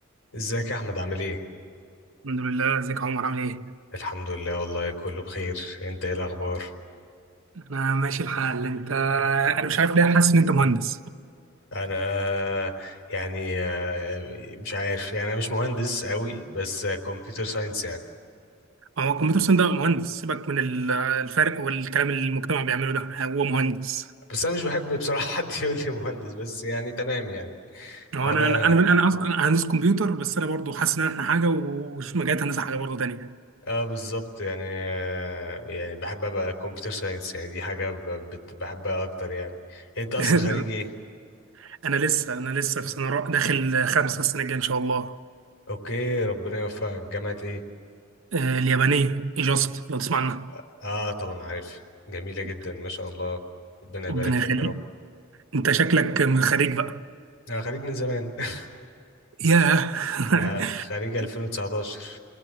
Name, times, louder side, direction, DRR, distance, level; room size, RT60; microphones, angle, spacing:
voice 1, 0.3-1.4 3.9-6.7 11.7-18.0 24.3-28.8 33.6-40.9 45.7-47.6 50.5-51.8 52.1-53.4 53.9-54.7 57.5-58.7 60.4-62.2, left 1 dB, 80° left, 4.1 m, -30 dB
voice 2, 2.2-3.7 7.7-11.0 19.0-24.0 28.1-33.3 40.2-40.6 41.8-45.2 48.3-50.5 54.1-54.8 55.5-57.0 59.4-60.8, right 4 dB, 75° right, 0.8 m, -23 dB
29.5 x 21.0 x 7.9 m
head